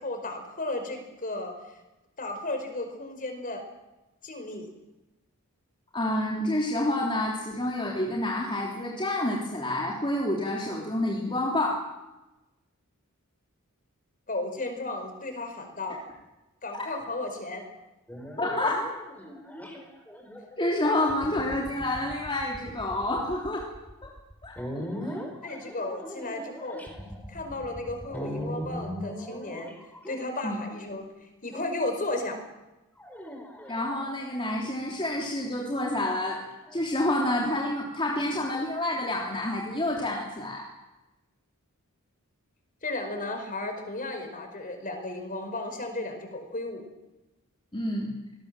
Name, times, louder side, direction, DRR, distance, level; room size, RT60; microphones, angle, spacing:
voice 1, 0.0-1.5 2.2-3.6 4.2-4.7 14.3-16.0 16.6-17.6 25.4-26.9 27.3-29.7 30.1-31.1 31.4-32.4 42.8-46.9, left 2 dB, 40° left, 6 dB, 5.1 m, -34 dB
voice 2, 5.9-11.8 18.4-18.9 20.6-23.7 24.0-24.1 24.4-25.2 30.4-30.6 33.7-36.4 36.7-40.7 47.7-48.1, left 1 dB, 25° left, -2 dB, 3.4 m, -28 dB
sound 1, 18.1-30.7 31.5-32.1 33.0-34.5 36.0-37.4, equal, 5° left, 5.0 m, -40 dB
26.0 x 20.5 x 7.7 m, 1.0 s
head